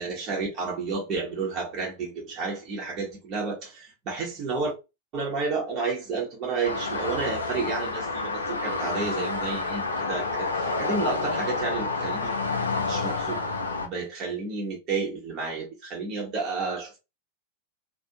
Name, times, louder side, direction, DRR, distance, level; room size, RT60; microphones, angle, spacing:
voice 1, 0.0-4.7 5.1-12.3 12.8-13.4 13.8-17.0, right 4 dB, 35° right, 0.8 m, -31 dB
sound 1, 6.6-13.9, left 3 dB, 75° left, 0.4 m, -29 dB
2.5 x 2.1 x 2.7 m
figure-of-eight pair, 90°, 0 cm